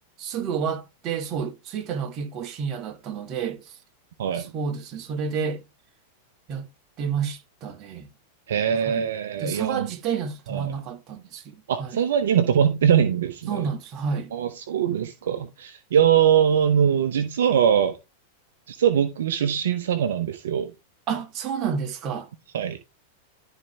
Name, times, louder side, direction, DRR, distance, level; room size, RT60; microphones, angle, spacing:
voice 1, 0.2-3.8 4.3-5.6 6.5-6.7 7.0-8.1 8.7-9.1 9.4-12.0 13.5-14.3 21.1-22.3, right 6 dB, 40° right, 2.0 m, -30 dB
voice 2, 8.5-9.9 10.5-10.7 11.7-13.7 14.3-18.0 18.7-20.7 22.5-22.8, right 8 dB, 70° right, 0.9 m, -22 dB
12.0 x 4.5 x 3.5 m
hypercardioid pair, 100°, 0 cm